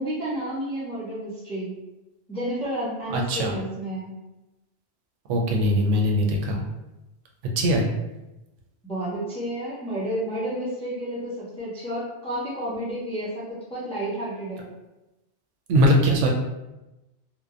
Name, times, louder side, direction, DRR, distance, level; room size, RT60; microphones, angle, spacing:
voice 1, 0.0-1.8 2.3-4.1 8.8-14.7, right 1 dB, 10° left, -7 dB, 0.3 m, -31 dB
voice 2, 3.1-3.5 5.3-6.6 7.6-7.8 15.7-16.3, equal, 85° right, 0 dB, 0.9 m, -21 dB
2.8 x 2.0 x 2.4 m, 1.0 s
omnidirectional pair, 1.2 m